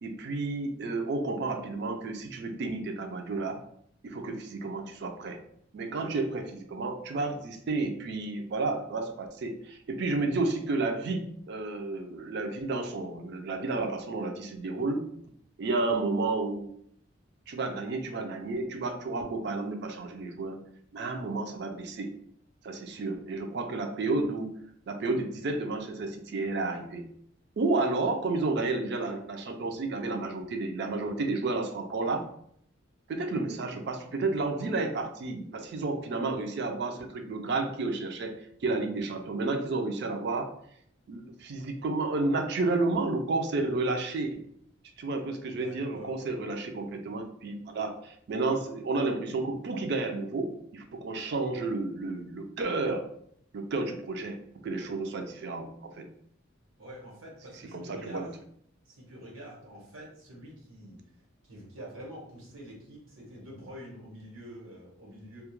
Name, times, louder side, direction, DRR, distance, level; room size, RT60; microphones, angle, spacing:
voice 1, 0.0-3.6 4.0-5.4 5.7-15.1 15.6-16.7 17.5-20.6 20.9-22.1 22.6-24.5 24.9-27.1 27.6-32.2 33.1-40.5 41.1-44.4 45.0-53.1 53.5-54.4 54.6-56.1 57.7-58.3, right 3 dB, 55° right, 5 dB, 0.3 m, -31 dB
voice 2, 45.5-46.5 56.8-58.3 58.8-61.0 61.4-65.4, equal, 90° right, -3 dB, 1.0 m, -46 dB
2.2 x 2.1 x 2.9 m, 0.67 s
head